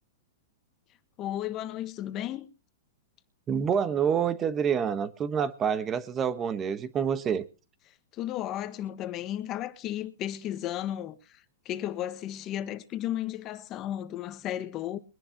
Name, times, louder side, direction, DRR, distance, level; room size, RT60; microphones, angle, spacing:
voice 1, 1.2-2.5 8.1-15.0, left 12 dB, 30° left, 1.3 m, -34 dB
voice 2, 3.5-7.4, right 7 dB, 20° right, 1.1 m, -27 dB
23.0 x 10.5 x 2.9 m
hypercardioid pair, 145°, 0 cm